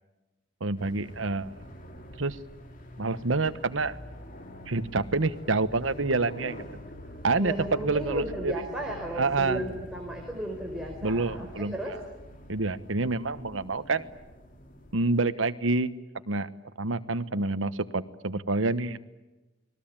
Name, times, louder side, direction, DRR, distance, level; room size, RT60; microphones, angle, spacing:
voice 1, 0.6-1.5 2.2-2.4 3.0-4.0 4.7-6.7 7.2-8.5 9.2-9.6 11.0-12.0 12.5-14.1 14.9-15.9 16.3-16.5 16.8-19.0, right 3 dB, 80° right, 12 dB, 1.2 m, -27 dB
sound 1, 0.8-15.2, equal, 45° left, 2.9 m, -45 dB
voice 2, 7.4-12.0, right 1 dB, 5° right, -1 dB, 4.7 m, -35 dB
29.5 x 21.0 x 9.0 m, 1.1 s
head